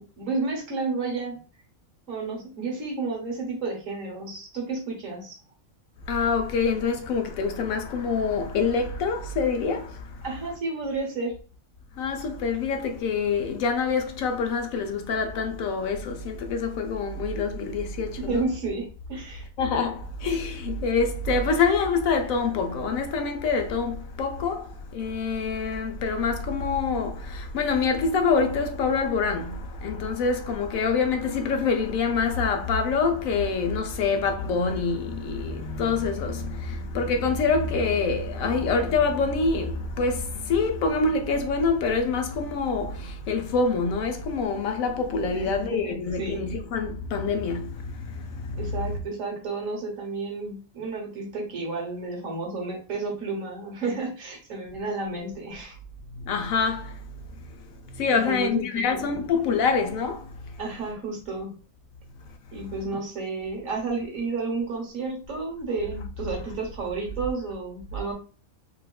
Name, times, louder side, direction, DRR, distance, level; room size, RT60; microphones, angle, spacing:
voice 1, 0.0-1.4 2.1-5.4 10.2-11.4 18.2-19.5 45.3-46.4 48.6-55.8 58.1-59.1 60.6-61.5 62.5-68.1, right 3 dB, 70° right, 1.5 m, -31 dB
voice 2, 6.1-10.2 12.0-18.4 19.6-48.9 56.1-57.0 57.9-60.4, left 4 dB, 80° left, 1.0 m, -26 dB
4.2 x 2.4 x 2.3 m
omnidirectional pair, 1.4 m